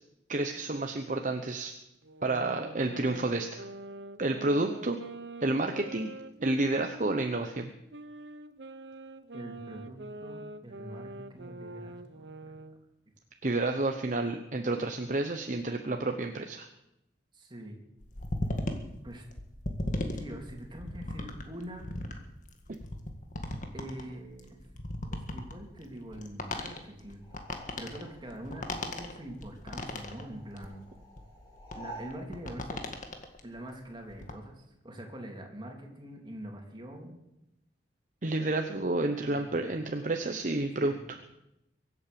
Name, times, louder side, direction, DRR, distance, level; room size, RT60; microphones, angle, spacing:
voice 1, 0.3-1.7 2.2-3.6 4.2-5.0 5.4-6.1 6.4-7.7 13.4-16.7 38.2-41.2, right 2 dB, 45° right, 5 dB, 1.0 m, -30 dB
sound 1, 2.0-7.4 7.9-12.8, right 2 dB, 85° right, 0.9 m, -45 dB
voice 2, 9.3-12.5 17.3-17.8 19.0-19.2 20.1-21.9 23.7-24.6 25.3-27.2 27.8-30.8 31.7-32.8 33.4-37.2 39.2-40.1 40.8-41.0, right 1 dB, 25° right, 1 dB, 3.1 m, -44 dB
sound 2, 18.0-33.4 33.9-34.3, left 1 dB, 45° left, 1.9 m, -37 dB
sound 3, 27.2-29.5 29.7-32.2, right 1 dB, 25° left, 7.1 m, -50 dB
23.5 x 8.7 x 7.0 m, 0.87 s
head